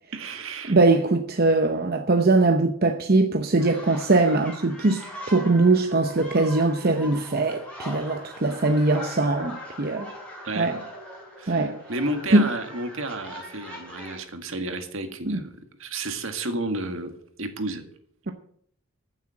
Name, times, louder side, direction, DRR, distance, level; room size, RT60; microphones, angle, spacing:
voice 1, 0.1-0.8 10.4-10.7 11.4-17.1 17.4-17.8, right 2 dB, 65° right, 1.9 m, -32 dB
voice 2, 0.7-10.1 10.6-10.8 11.5-11.8 12.3-12.5 15.3-15.4, right 2 dB, 45° right, 0.8 m, -21 dB
sound 1, 3.6-14.2, left 1 dB, 5° left, 4.2 m, -41 dB
15.0 x 7.4 x 7.7 m
head